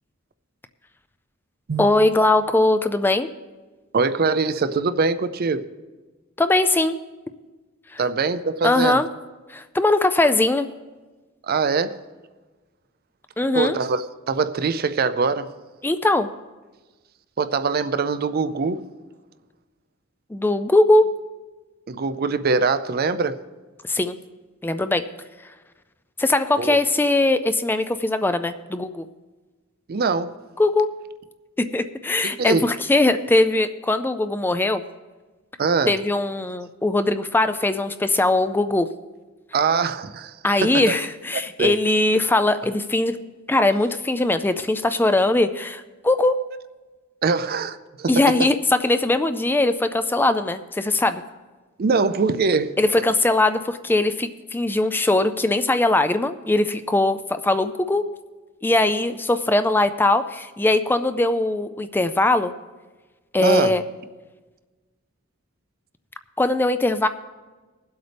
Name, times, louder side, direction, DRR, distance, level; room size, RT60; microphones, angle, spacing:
voice 1, 1.8-3.3 6.4-7.0 7.9-8.0 8.6-9.1 9.5-10.7 13.4-13.8 15.8-16.3 20.3-21.1 23.9-24.2 24.6-25.1 26.2-29.1 30.6-30.9 31.7-34.8 35.9-38.9 40.4-43.2 43.5-46.4 48.1-51.2 52.8-58.0 58.6-62.5 63.3-63.8 66.4-67.1, left 2 dB, 10° left, 10 dB, 0.3 m, -20 dB
voice 2, 3.9-5.7 8.0-9.0 11.5-12.0 13.5-15.6 17.4-18.9 21.9-23.4 26.6-26.8 29.9-30.3 32.2-32.6 35.6-36.0 39.5-40.4 40.6-40.8 41.3-41.7 47.2-48.5 51.8-52.8 63.4-63.8, right 4 dB, 50° right, 12 dB, 0.5 m, -23 dB
20.5 x 8.0 x 3.4 m, 1.3 s
head